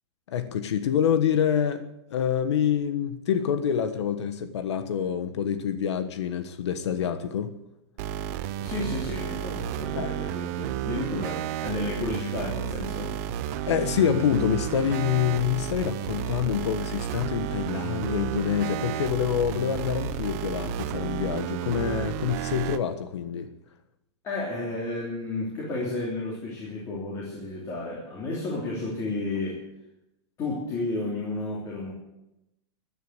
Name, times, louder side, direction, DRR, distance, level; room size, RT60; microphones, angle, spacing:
voice 1, 0.3-7.6 9.9-10.1 13.7-23.5, left 8 dB, 80° left, 1.4 m, -26 dB
sound 1, 8.0-22.8, right 11 dB, 35° right, 0.7 m, -32 dB
voice 2, 8.6-13.2 24.2-29.6 30.4-31.9, left 2 dB, 20° left, 3.1 m, -32 dB
15.5 x 10.5 x 8.0 m
supercardioid pair, 175°, 14 cm